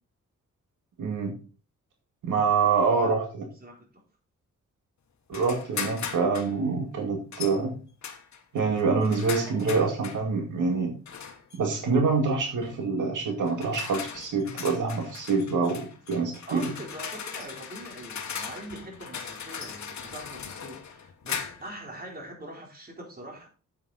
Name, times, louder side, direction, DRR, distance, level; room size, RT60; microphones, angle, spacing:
voice 1, 1.0-1.3 2.2-3.4 5.3-7.7 8.5-10.9 11.6-16.7, right 4 dB, 85° right, 2 dB, 2.2 m, -26 dB
sound 1, 5.3-6.5 7.3-7.6 8.0-10.2 11.1-11.6 12.6-12.8 13.4-21.8, left 6 dB, 65° left, 1.5 m, -38 dB
voice 2, 16.5-23.5, right 1 dB, 30° right, 0 dB, 4.0 m, -43 dB
8.5 x 8.3 x 4.1 m, 0.36 s
wide cardioid pair, 115°, 30 cm